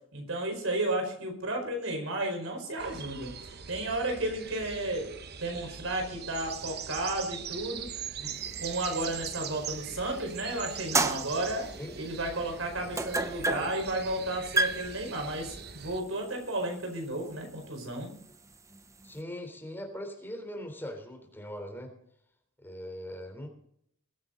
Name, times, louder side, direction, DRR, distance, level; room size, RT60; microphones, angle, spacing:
voice 1, 0.1-3.3 3.7-5.1 5.4-8.3 8.6-11.7 11.9-18.1, right 1 dB, 80° right, 4 dB, 4.8 m, -33 dB
sound 1, 2.8-16.0, right 7 dB, 55° right, 1.0 m, -41 dB
sound 2, 8.4-10.3 10.7-19.2, right 2 dB, 15° right, 0.6 m, -34 dB
voice 2, 19.0-21.9 22.6-23.5, equal, 10° left, 3 dB, 3.6 m, -40 dB
22.0 x 9.4 x 4.0 m, 0.70 s
head